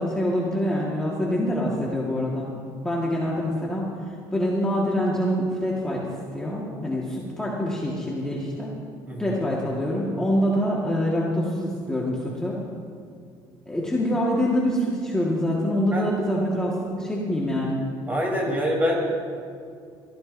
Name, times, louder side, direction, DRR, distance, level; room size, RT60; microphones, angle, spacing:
voice 1, 0.0-2.5 2.8-6.1 6.3-8.7 9.2-12.6 13.7-17.8, equal, 5° left, -5 dB, 1.6 m, -25 dB
voice 2, 9.1-9.4 15.9-16.0 18.1-19.0, equal, 20° right, -2 dB, 3.6 m, -25 dB
24.0 x 14.5 x 2.6 m, 2.2 s
cardioid pair, 145°, 9 cm